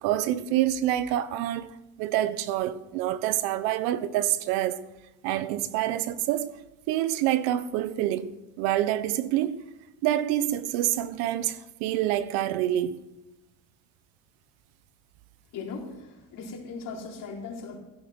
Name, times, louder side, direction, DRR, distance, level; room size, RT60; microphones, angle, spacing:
voice 1, 0.0-1.7 2.0-4.8 5.2-6.5 6.9-9.6 10.0-13.0, right 13 dB, 80° right, 1.1 m, -27 dB
voice 2, 15.5-17.8, left 4 dB, 60° left, 4.4 m, -38 dB
16.0 x 11.5 x 6.2 m
cardioid pair, 130°, 37 cm